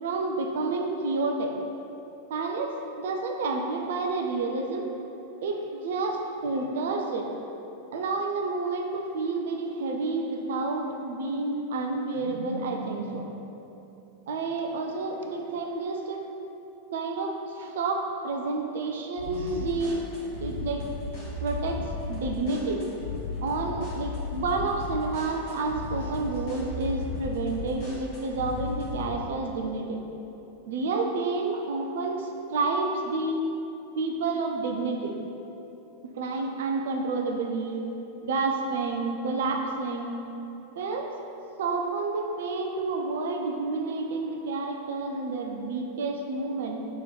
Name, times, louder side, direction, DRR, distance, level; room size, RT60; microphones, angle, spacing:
voice 1, 0.0-1.5 2.3-4.9 5.4-7.3 7.9-13.3 14.3-16.3 16.9-20.1 20.3-21.0 21.4-22.9 23.4-30.0 30.7-33.5 34.0-35.2 36.0-37.8 38.2-40.1 40.8-41.1 41.6-46.9, right 3 dB, 60° right, 2 dB, 0.4 m, -29 dB
sound 1, 19.2-29.1, left 4 dB, 50° left, 1.1 m, -35 dB
3.1 x 3.0 x 3.8 m, 2.9 s
figure-of-eight pair, 90°, 0 cm